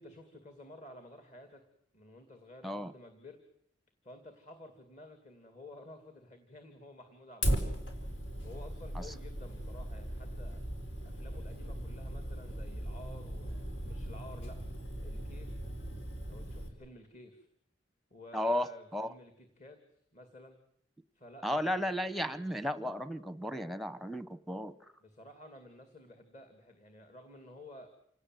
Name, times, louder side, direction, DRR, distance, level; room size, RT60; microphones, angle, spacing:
voice 1, 0.0-1.6 1.9-3.4 4.0-7.8 8.1-10.6 11.0-14.6 15.0-15.6 16.3-17.5 18.1-20.6 21.1-21.9 25.0-27.9, left 1 dB, 40° left, 7 dB, 2.4 m, -52 dB
Fire, 7.4-16.7, equal, 80° left, 4.3 m, -38 dB
voice 2, 18.3-18.7 18.9-19.1 21.4-24.7, left 1 dB, ahead, 13 dB, 0.9 m, -34 dB
28.0 x 18.5 x 7.8 m, 0.69 s
head